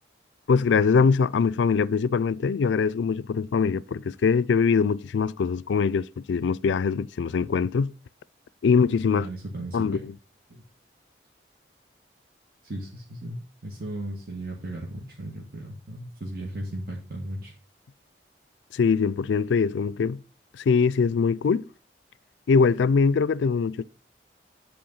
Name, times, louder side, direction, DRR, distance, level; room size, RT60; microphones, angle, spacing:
voice 1, 0.5-7.9 8.6-9.3 9.7-10.1 18.7-20.2 20.6-21.7 22.5-23.8, left 5 dB, 80° left, 0.4 m, -22 dB
voice 2, 9.1-10.0 12.6-17.5, right 1 dB, 55° right, 1.7 m, -36 dB
10.5 x 4.4 x 5.4 m
head